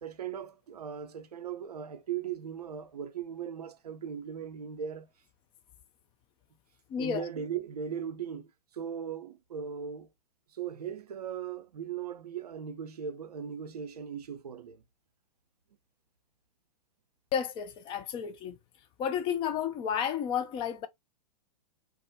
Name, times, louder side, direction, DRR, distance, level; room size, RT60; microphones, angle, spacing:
voice 1, 0.0-5.1 7.0-8.5 8.7-10.1 10.5-14.8, right 8 dB, 75° right, 0.5 m, -38 dB
voice 2, 6.9-7.3 17.3-18.6 19.0-20.9, left 8 dB, 25° left, 0.4 m, -31 dB
2.3 x 2.0 x 2.7 m
hypercardioid pair, 110°, 20 cm